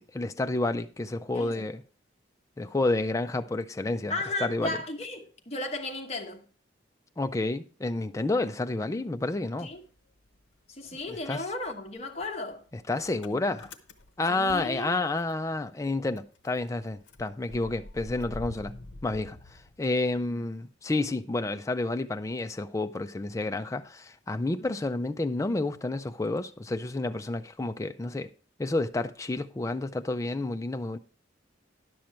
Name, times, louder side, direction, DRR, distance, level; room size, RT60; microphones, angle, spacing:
voice 1, 0.1-1.8 2.6-4.1 4.4-4.8 7.2-9.7 11.1-11.4 12.7-13.7 14.2-18.8 19.0-28.3 28.6-31.0, left 2 dB, 15° left, 0.4 m, -30 dB
voice 2, 1.3-1.7 4.1-6.5 9.6-9.8 10.7-12.6 14.3-14.9 24.6-24.8, left 2 dB, 35° left, 1.1 m, -35 dB
Motor vehicle (road) / Engine starting, 9.3-10.6 10.8-15.5 15.8-15.9 16.2-20.3, left 2 dB, 75° left, 0.8 m, -47 dB
10.5 x 6.3 x 4.4 m
head